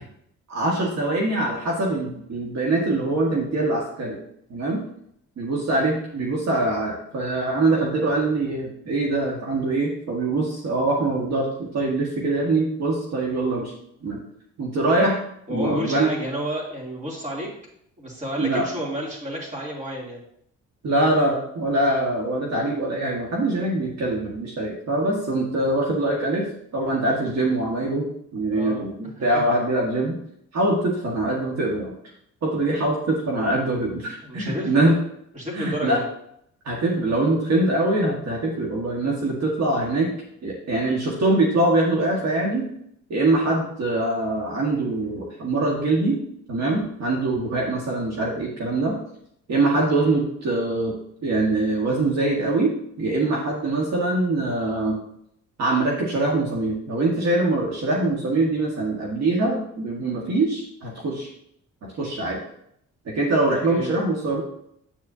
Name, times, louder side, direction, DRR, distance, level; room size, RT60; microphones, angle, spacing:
voice 1, 0.5-4.2 4.5-4.8 5.4-13.7 14.0-14.2 14.6-15.2 15.5-16.1 18.4-18.6 20.8-30.2 30.5-31.9 32.4-35.0 35.5-36.0 36.6-40.1 40.4-42.6 43.1-46.2 46.5-49.0 49.5-50.9 51.2-55.0 55.6-61.3 61.8-62.4 63.0-64.4, right 2 dB, 60° right, -2 dB, 1.7 m, -23 dB
voice 2, 15.5-17.5 18.0-20.2 28.5-28.8 29.2-29.3 34.2-34.8 35.3-36.1 63.7-63.9, equal, 25° right, -3 dB, 3.0 m, -31 dB
8.6 x 7.5 x 2.8 m, 0.71 s
cardioid pair, 90°, 30 cm